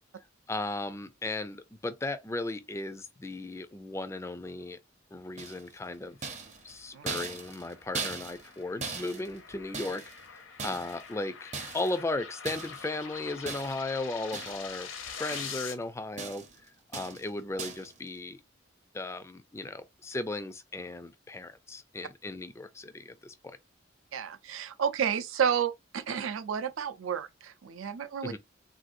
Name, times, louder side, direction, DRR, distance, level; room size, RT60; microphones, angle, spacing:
voice 1, 0.5-4.8 5.1-6.3 6.6-10.0 10.3-18.4 18.9-23.6 28.2-28.4, left 2 dB, 15° left, 0.3 m, -36 dB
sound 1, 5.4-5.8 6.2-8.6 8.8-10.2 10.6-11.1 11.5-12.0 12.5-12.9 13.5-13.9 14.3-14.8 15.1-15.8 16.2-16.6 16.9-17.3 17.6-17.9, right 4 dB, 35° right, 0.6 m, -39 dB
sound 2, 6.9-15.7, left 6 dB, 80° left, 0.8 m, -45 dB
voice 2, 24.1-28.3, right 8 dB, 85° right, 0.5 m, -31 dB
3.3 x 2.6 x 2.5 m
head